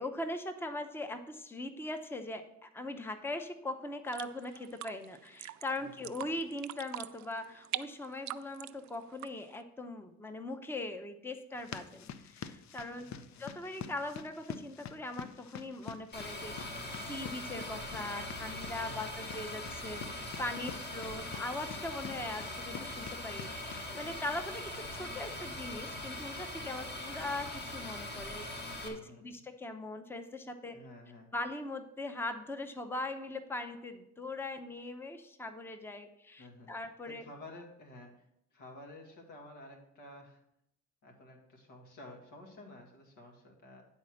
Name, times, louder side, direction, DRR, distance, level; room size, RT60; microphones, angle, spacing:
voice 1, 0.0-13.1 13.4-30.8 31.3-37.2, left 2 dB, 10° left, 8 dB, 0.7 m, -40 dB
sound 1, 4.0-9.6, right 15 dB, 65° right, 0.4 m, -44 dB
voice 2, 5.8-6.1 13.0-13.4 18.7-19.4 28.9-29.4 30.7-31.3 36.4-38.3 38.5-40.4 41.0-43.9, left 1 dB, 85° left, 1 dB, 2.1 m, -52 dB
sound 2, 11.5-23.8, left 8 dB, 65° left, 0.6 m, -48 dB
sound 3, 16.1-28.9, left 1 dB, 35° left, 1.8 m, -41 dB
10.0 x 4.2 x 6.3 m, 0.79 s
cardioid pair, 90°, 30 cm